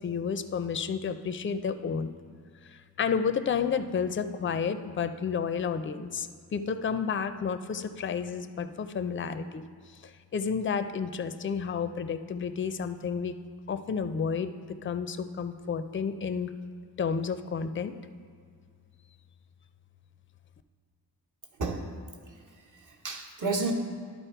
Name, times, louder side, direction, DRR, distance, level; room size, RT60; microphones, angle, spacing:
voice 1, 0.0-2.1 2.7-9.6 10.3-13.3 13.7-14.5 14.8-16.5 17.0-17.9, left 6 dB, 30° left, 11 dB, 0.4 m, -31 dB
voice 2, 21.6-23.7, right 3 dB, 50° right, 2 dB, 1.0 m, -33 dB
11.5 x 4.2 x 4.5 m, 2.1 s
wide cardioid pair, 85°, 40 cm